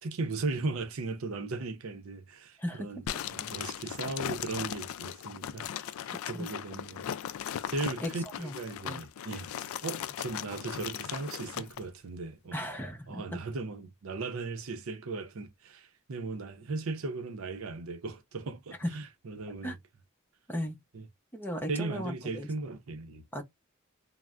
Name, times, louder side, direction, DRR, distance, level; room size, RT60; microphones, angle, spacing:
voice 1, 0.0-3.0 3.3-7.0 7.7-9.5 9.8-12.6 13.1-19.8 20.9-21.0 21.7-23.2, right 3 dB, 75° right, 0.6 m, -37 dB
voice 2, 2.6-3.0 6.3-6.5 8.0-8.6 8.9-9.0 12.5-13.2 18.8-18.9 19.6-19.8 20.5-20.8 21.3-22.5 23.3-23.4, equal, 10° left, 0.7 m, -36 dB
sound 1, 3.1-11.8, left 10 dB, 70° left, 0.3 m, -38 dB
3.3 x 2.1 x 2.4 m
head